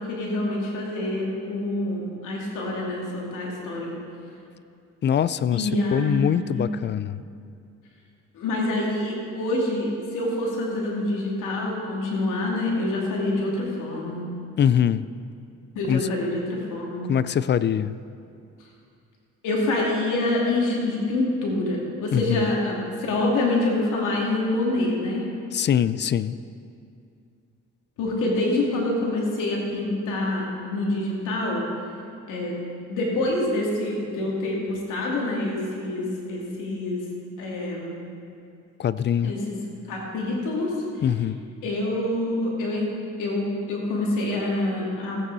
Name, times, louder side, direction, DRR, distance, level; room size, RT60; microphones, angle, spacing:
voice 1, 0.1-3.9 5.5-6.7 8.3-14.2 15.7-17.0 19.4-25.2 28.0-31.6 32.3-32.6 32.9-37.0 37.4-38.0 39.2-39.6 39.9-40.7 41.6-42.9 43.2-45.2, left 2 dB, 90° left, -2 dB, 2.6 m, -26 dB
voice 2, 5.0-7.2 14.6-15.0 15.9-16.1 17.1-17.9 22.1-22.5 25.5-26.4 38.8-39.3 41.0-41.4, left 9 dB, 40° left, 16 dB, 0.4 m, -23 dB
15.5 x 8.7 x 4.0 m, 2.5 s
cardioid pair, 90°, 30 cm